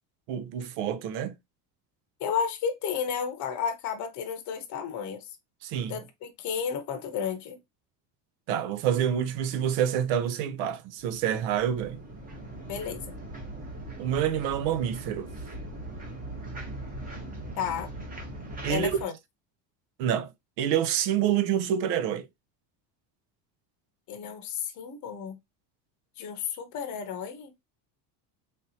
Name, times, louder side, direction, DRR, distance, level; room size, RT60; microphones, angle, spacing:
voice 1, 0.3-1.4 5.6-6.0 8.5-12.0 14.0-15.3 18.6-18.9 20.0-20.3 20.6-22.3, right 9 dB, 90° right, 0.7 m, -27 dB
voice 2, 2.2-5.2 5.9-7.6 12.7-13.2 17.6-17.9 18.7-19.1 24.1-25.4 26.2-27.5, left 7 dB, 40° left, 0.7 m, -32 dB
sound 1, 11.0-19.0, right 1 dB, 20° right, 0.8 m, -40 dB
3.4 x 2.8 x 2.7 m
cardioid pair, 155°, 47 cm